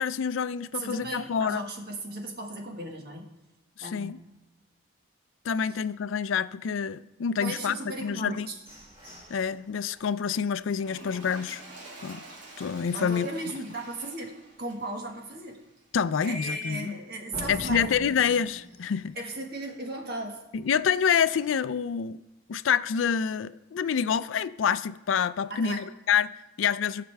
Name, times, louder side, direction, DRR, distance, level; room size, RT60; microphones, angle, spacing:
voice 1, 0.0-1.6 3.8-4.2 5.4-8.5 9.3-11.6 12.0-12.2 12.6-13.3 15.9-17.0 17.5-19.2 20.5-22.2 22.5-27.0, left 7 dB, 85° left, 0.4 m, -27 dB
voice 2, 0.7-3.3 3.8-4.2 5.7-5.8 7.4-8.5 12.9-15.6 16.2-17.9 19.2-20.4 25.5-25.8, right 1 dB, 55° right, 1.7 m, -36 dB
sound 1, 8.0-11.9 12.4-12.5 12.9-13.3 13.6-13.7 14.2-14.3 17.3-20.0, left 1 dB, 30° right, 2.0 m, -46 dB
Toilet flush, 10.7-16.2 16.9-17.0, right 2 dB, 75° right, 2.3 m, -49 dB
19.5 x 6.6 x 3.5 m
head